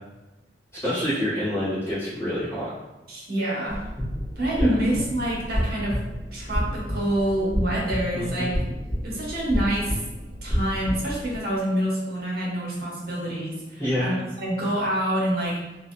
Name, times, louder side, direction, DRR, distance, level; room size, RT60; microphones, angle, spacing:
voice 1, 0.8-2.7 4.6-4.7 8.1-8.6 13.8-14.2, left 1 dB, 15° left, -13 dB, 1.4 m, -27 dB
voice 2, 3.1-3.9 4.4-6.0 6.3-8.6 9.0-10.0 10.4-14.1 14.4-15.6, right 1 dB, 60° right, -5 dB, 0.9 m, -26 dB
sound 1, 3.7-11.4, equal, ahead, 1.1 m, -30 dB
3.0 x 2.6 x 2.2 m, 1.1 s
head